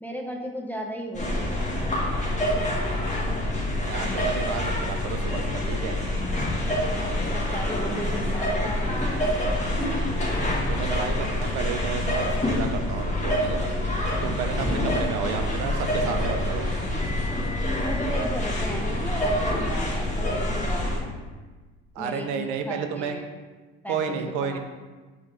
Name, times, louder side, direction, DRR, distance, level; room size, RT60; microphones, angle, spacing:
voice 1, 0.0-2.0 6.7-9.5 14.7-15.0 17.8-21.2 22.0-23.3 23.8-24.6, equal, 5° left, 0 dB, 0.4 m, -36 dB
sound 1, 1.1-21.0, left 1 dB, 25° left, 1.1 m, -26 dB
voice 2, 3.8-6.0 10.7-13.7 14.2-16.7 22.0-23.1 23.9-24.6, right 6 dB, 80° right, 6 dB, 0.5 m, -31 dB
4.8 x 2.5 x 3.0 m, 1.3 s
cardioid pair, 100°, 30 cm